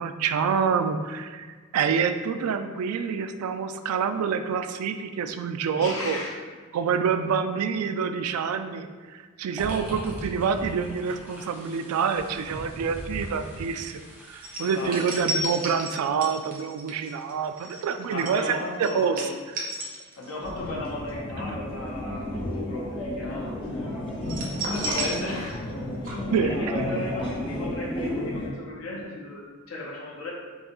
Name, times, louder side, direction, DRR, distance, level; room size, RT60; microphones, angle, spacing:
voice 1, 0.0-1.5 1.7-6.2 6.7-14.0 14.3-19.3 26.3-26.9, right 6 dB, 90° right, 9 dB, 0.3 m, -27 dB
voice 2, 5.7-6.4 14.7-15.0 18.1-19.3 20.2-23.8 24.7-25.7 26.0-30.3, left 2 dB, 70° left, -3 dB, 0.9 m, -35 dB
sound 1, 9.6-15.6, equal, 5° right, 0.7 m, -40 dB
sound 2, 14.4-20.5 20.8-21.1 24.2-25.8 26.0-26.1, right 1 dB, 40° right, 0.7 m, -33 dB
sound 3, 20.4-28.5, left 1 dB, 25° left, 0.8 m, -32 dB
5.3 x 2.3 x 3.0 m, 1.5 s
head